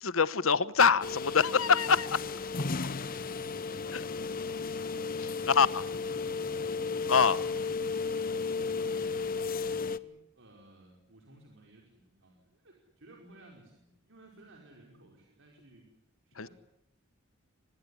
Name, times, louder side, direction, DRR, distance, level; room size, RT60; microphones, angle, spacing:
voice 1, 0.0-2.1 3.9-4.0 5.2-5.8 7.1-7.4 16.4-16.5, left 6 dB, 75° left, 16 dB, 1.1 m, -25 dB
sound 1, 1.0-10.0, left 4 dB, 45° left, 0.9 m, -34 dB
voice 2, 2.0-4.9 5.2-5.6 5.9-8.9 9.6-15.9 16.2-16.5, right 1 dB, 65° right, 0 dB, 5.1 m, -57 dB
25.5 x 20.5 x 9.9 m, 0.79 s
head